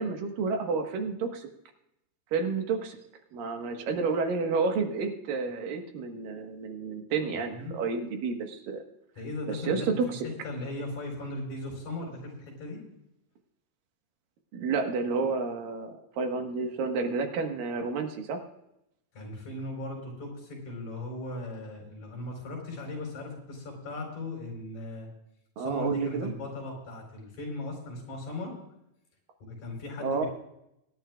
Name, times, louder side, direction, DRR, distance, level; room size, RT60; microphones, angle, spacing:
voice 1, 0.0-1.5 2.3-3.0 3.3-8.8 9.7-10.2 14.5-15.9 16.2-18.4 25.6-26.3 30.0-30.2, right 4 dB, 85° right, 4 dB, 3.2 m, -30 dB
voice 2, 9.2-10.2 10.4-12.8 19.1-25.1 25.6-28.5 29.4-30.3, left 1 dB, 60° left, 0 dB, 5.7 m, -38 dB
23.5 x 10.5 x 2.4 m, 0.83 s
omnidirectional pair, 3.8 m